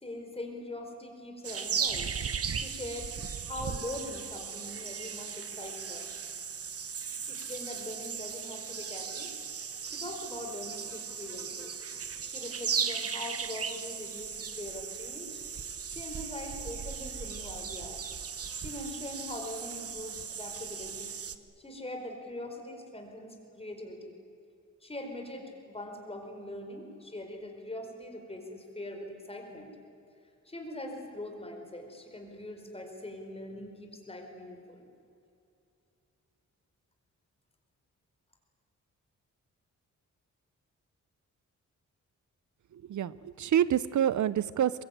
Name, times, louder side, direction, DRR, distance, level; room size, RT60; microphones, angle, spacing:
voice 1, 0.0-2.1 2.6-3.1 3.4-6.1 7.1-9.3 9.8-11.8 12.2-15.4 15.9-18.0 18.5-21.2 21.6-24.2 24.8-29.7 30.4-34.9, left 1 dB, 20° left, 3 dB, 4.7 m, -42 dB
sound 1, 1.4-21.3, right 6 dB, 50° right, 1.2 m, -37 dB
voice 2, 42.7-44.8, right 10 dB, 70° right, 17 dB, 0.6 m, -27 dB
22.5 x 22.5 x 9.2 m, 2.5 s
wide cardioid pair, 105°, 31 cm